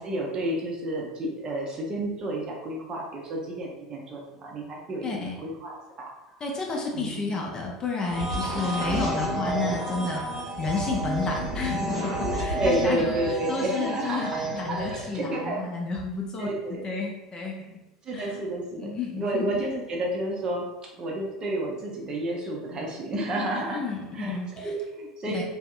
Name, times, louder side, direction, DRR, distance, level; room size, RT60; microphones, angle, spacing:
voice 1, 0.0-6.1 6.9-7.3 8.4-9.1 12.6-15.7 16.4-16.9 18.0-18.9 19.1-20.7 21.0-23.8 24.1-25.4, right 1 dB, 30° right, -2 dB, 0.6 m, -31 dB
voice 2, 5.0-5.4 6.4-13.2 13.5-17.8 18.1-18.4 18.8-19.5 23.6-24.7 25.3-25.4, left 4 dB, 30° left, -1 dB, 0.4 m, -31 dB
sound 1, 7.9-15.2, right 2 dB, 15° right, 1.1 m, -33 dB
sound 2, 8.1-13.1, equal, 80° right, 0.8 m, -33 dB
2.6 x 2.0 x 2.4 m, 1.0 s
figure-of-eight pair, 75°, 3 cm